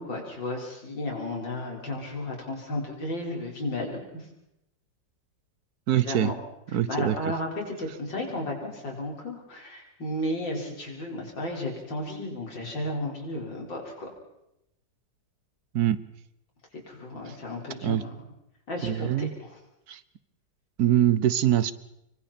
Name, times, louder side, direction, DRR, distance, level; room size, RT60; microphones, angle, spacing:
voice 1, 0.0-4.3 6.0-6.3 6.9-13.9 16.9-18.1 18.7-19.1 19.4-19.5, left 1 dB, 85° left, 0 dB, 5.7 m, -33 dB
voice 2, 5.9-6.3 6.7-7.4 15.7-16.0 17.8-18.0 18.8-19.3 19.9-20.0 20.8-21.7, right 11 dB, 60° right, 16 dB, 1.3 m, -23 dB
27.0 x 24.0 x 4.4 m, 0.83 s
omnidirectional pair, 2.0 m